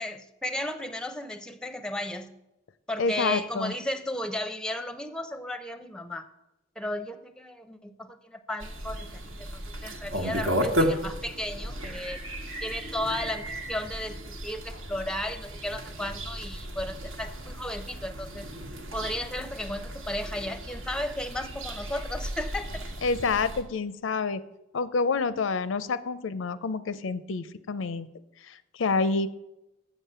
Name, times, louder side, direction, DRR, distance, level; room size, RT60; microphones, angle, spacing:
voice 1, 0.0-2.3 2.9-6.3 6.8-12.2 12.6-18.5 18.9-22.9, left 1 dB, 5° left, 10 dB, 0.5 m, -34 dB
voice 2, 3.0-3.7 23.0-24.4 24.7-28.1 28.4-29.3, left 4 dB, 80° left, 15 dB, 0.5 m, -28 dB
sound 1, 8.6-23.6, equal, 85° right, 1.3 m, -34 dB
7.4 x 6.9 x 6.8 m, 0.93 s
head